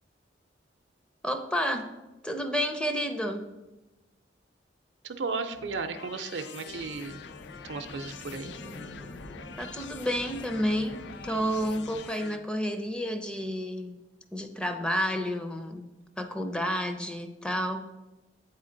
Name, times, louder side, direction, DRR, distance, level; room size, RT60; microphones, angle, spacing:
voice 1, 1.2-1.9 2.2-3.5 9.6-14.0 14.3-15.8 16.2-17.9, equal, 5° left, 7 dB, 0.4 m, -30 dB
voice 2, 5.0-7.2 7.6-8.6, right 4 dB, 80° right, 9 dB, 0.5 m, -35 dB
sound 1, 5.5-12.4, left 7 dB, 70° left, 0.4 m, -45 dB
sound 2, 6.7-12.1, equal, 40° left, 0.8 m, -46 dB
7.9 x 4.3 x 3.8 m, 1.1 s
head